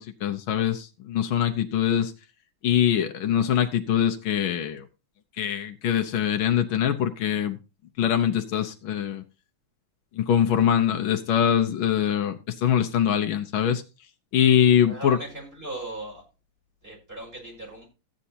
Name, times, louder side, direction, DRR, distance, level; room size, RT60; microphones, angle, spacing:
voice 1, 0.0-2.1 2.6-4.8 5.4-7.6 8.0-9.2 10.1-13.8 14.3-15.2, left 9 dB, 75° left, 6 dB, 1.5 m, -23 dB
voice 2, 14.8-16.2 16.8-17.9, right 2 dB, 25° right, -2 dB, 5.3 m, -38 dB
14.5 x 8.9 x 2.8 m, 0.31 s
omnidirectional pair, 2.3 m